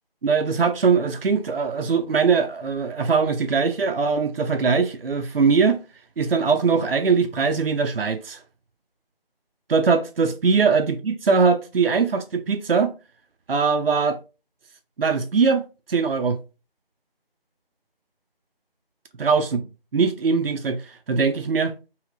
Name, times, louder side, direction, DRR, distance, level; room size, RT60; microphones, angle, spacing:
voice 1, 0.2-5.8 6.2-8.4 9.7-12.9 13.5-14.2 15.0-16.4 19.2-19.6 19.9-21.7, right 5 dB, 70° right, 0.5 m, -21 dB
3.1 x 2.7 x 2.4 m
figure-of-eight pair, 170°, 30 cm